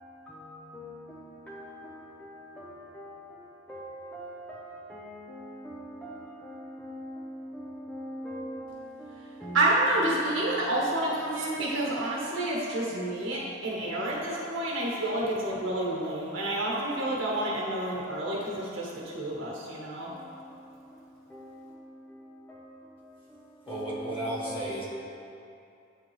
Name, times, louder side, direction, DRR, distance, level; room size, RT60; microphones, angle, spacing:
voice 1, 0.0-10.8 11.7-11.9 13.9-14.6 15.2-15.4 20.1-24.8, equal, 5° left, 0.4 m, -44 dB
voice 2, 9.5-20.1, right 1 dB, 80° right, 1.3 m, -29 dB
voice 3, 23.6-24.8, right 1 dB, 30° left, 1.4 m, -33 dB
8.8 x 3.7 x 3.1 m
head